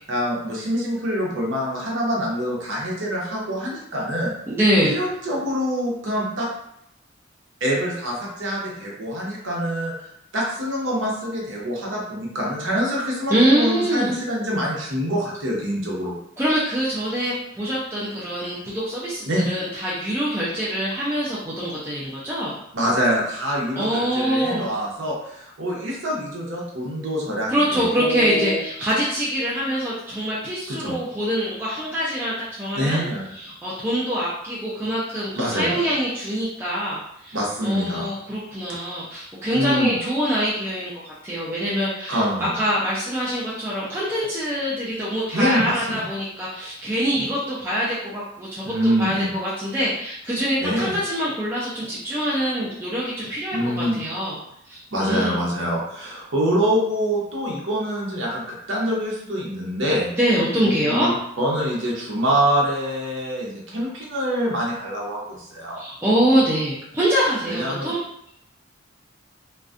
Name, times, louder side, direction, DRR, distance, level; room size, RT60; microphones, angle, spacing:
voice 1, 0.1-4.3 4.8-6.5 7.6-16.1 19.2-19.5 22.7-28.6 30.7-31.0 32.7-33.3 35.3-35.8 37.3-38.2 39.5-40.0 42.1-42.6 45.3-46.0 47.1-47.3 48.6-49.3 49.6-49.7 50.6-50.9 53.5-54.0 54.9-60.1 60.5-61.1 61.4-65.8 67.4-67.9, equal, 65° right, -3 dB, 0.7 m, -25 dB
voice 2, 4.5-4.9 13.3-14.1 16.4-22.5 23.8-24.7 27.5-33.0 33.3-42.2 42.6-48.7 49.0-54.4 54.6-55.4 60.1-61.1 65.7-68.0, equal, 10° right, -8 dB, 0.4 m, -24 dB
2.5 x 2.2 x 2.4 m, 0.75 s
head